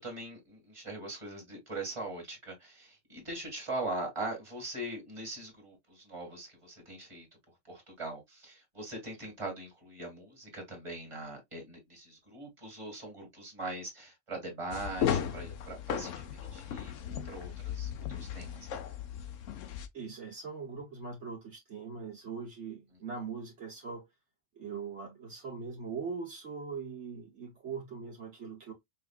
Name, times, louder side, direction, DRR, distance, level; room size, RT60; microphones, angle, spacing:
voice 1, 0.0-7.3 7.7-18.7, right 2 dB, 25° right, 2.0 m, -41 dB
sound 1, 14.7-19.9, left 9 dB, 80° left, 1.0 m, -36 dB
voice 2, 19.9-24.1 24.5-28.7, right 5 dB, 65° right, 1.5 m, -41 dB
5.4 x 2.5 x 2.3 m
omnidirectional pair, 1.3 m